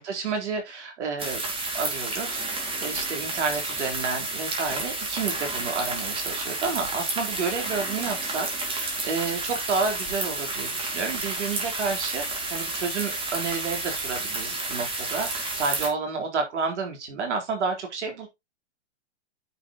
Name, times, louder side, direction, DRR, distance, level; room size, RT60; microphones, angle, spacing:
voice 1, 0.0-1.4 1.7-12.2 12.5-18.3, right 4 dB, 70° right, 4.1 m, -30 dB
sound 1, 1.2-15.9, right 2 dB, 15° right, 3.5 m, -31 dB
10.0 x 6.6 x 3.0 m
hypercardioid pair, 120°, 35 cm